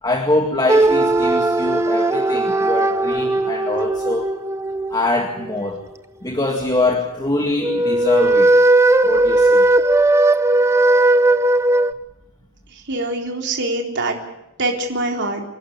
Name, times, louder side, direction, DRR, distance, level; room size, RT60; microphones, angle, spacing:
voice 1, 0.0-4.3 4.9-5.8 6.2-8.6 9.0-9.7, left 2 dB, 20° left, 3 dB, 2.0 m, -23 dB
sound 1, 0.7-5.6 7.6-11.9, right 2 dB, 15° right, 0.7 m, -17 dB
voice 2, 12.9-14.2 14.6-15.4, right 2 dB, 55° right, 1 dB, 3.8 m, -23 dB
27.0 x 12.0 x 9.7 m, 0.90 s
head